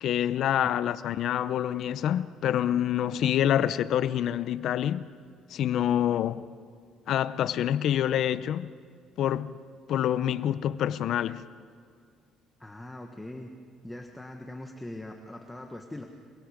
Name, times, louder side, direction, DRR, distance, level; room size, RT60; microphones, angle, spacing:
voice 1, 0.0-5.1 5.5-6.4 7.1-8.7 9.2-9.5 9.9-11.4, left 10 dB, 65° left, 0.6 m, -26 dB
voice 2, 12.6-13.5 13.8-16.0, left 1 dB, 10° left, 1.5 m, -41 dB
27.5 x 24.0 x 5.1 m
cardioid pair, 115°, 0 cm